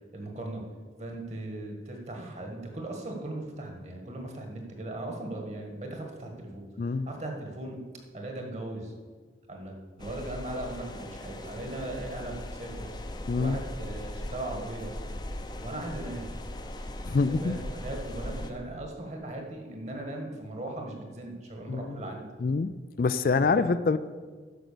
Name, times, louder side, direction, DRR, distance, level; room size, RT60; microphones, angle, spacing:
voice 1, 0.1-0.6 1.0-6.6 7.1-7.8 8.1-8.9 9.5-12.9 13.4-14.9 15.5-16.3 17.1-22.2 23.2-23.7, right 1 dB, 40° right, 2 dB, 1.7 m, -38 dB
voice 2, 6.8-7.1 13.3-13.6 17.1-17.6 21.7-22.0 22.4-22.7 23.0-24.0, left 4 dB, 50° left, 13 dB, 0.3 m, -25 dB
sound 1, 10.0-18.5, left 1 dB, 25° left, 0.7 m, -39 dB
10.0 x 6.4 x 6.8 m, 1.5 s
head